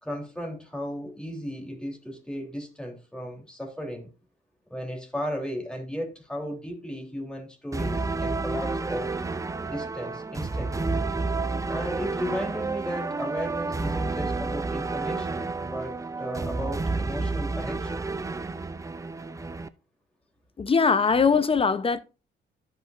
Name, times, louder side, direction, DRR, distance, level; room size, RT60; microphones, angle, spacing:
voice 1, 0.0-4.1 4.7-9.1 9.6-10.9 11.7-18.1, equal, 5° left, 3.2 m, -35 dB
sound 1, 7.7-19.7, right 3 dB, 15° right, 0.5 m, -30 dB
voice 2, 20.6-22.0, left 5 dB, 30° left, 0.6 m, -21 dB
14.0 x 5.4 x 2.5 m
cardioid pair, 90°, 20 cm